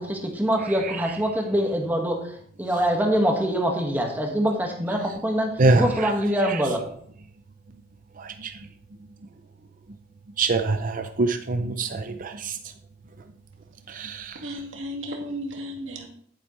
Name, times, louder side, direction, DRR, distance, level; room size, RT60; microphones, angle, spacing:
voice 1, 0.0-6.8, equal, 10° right, 1 dB, 1.8 m, -24 dB
voice 2, 8.2-8.6 10.4-12.6 13.9-14.4, right 3 dB, 45° right, 7 dB, 0.6 m, -24 dB
voice 3, 14.4-16.1, equal, 85° right, 1 dB, 2.2 m, -34 dB
10.5 x 8.8 x 3.3 m, 0.62 s
head